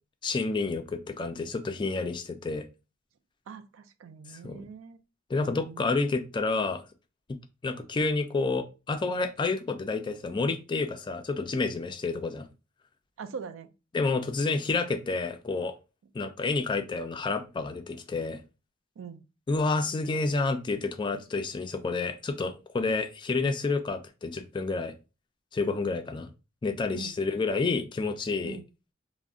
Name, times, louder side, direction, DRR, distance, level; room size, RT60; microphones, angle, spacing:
voice 1, 0.2-2.6 4.3-4.6 5.3-6.8 7.3-12.5 13.9-15.7 16.1-18.4 19.5-24.9 25.5-26.3 26.6-28.6, left 3 dB, 25° left, 8 dB, 0.3 m, -29 dB
voice 2, 3.5-5.0 5.4-6.0 13.2-13.7 19.0-19.2 26.9-27.2 28.4-28.7, right 6 dB, 75° right, 10 dB, 0.4 m, -42 dB
2.4 x 2.1 x 3.5 m, 0.29 s
head